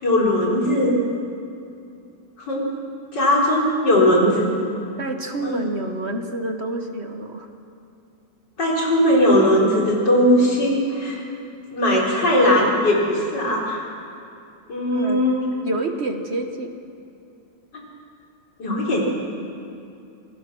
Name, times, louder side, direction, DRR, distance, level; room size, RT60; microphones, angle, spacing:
voice 1, 0.0-1.0 2.4-2.6 3.1-4.5 5.4-5.6 8.6-11.2 11.7-13.8 14.7-15.4 17.7-17.8 18.6-19.1, left 1 dB, 70° left, -3 dB, 4.9 m, -19 dB
voice 2, 4.7-7.5 14.9-15.2 15.6-16.7, right 2 dB, 40° right, 5 dB, 1.3 m, -28 dB
27.5 x 18.5 x 6.2 m, 2.6 s
omnidirectional pair, 1.9 m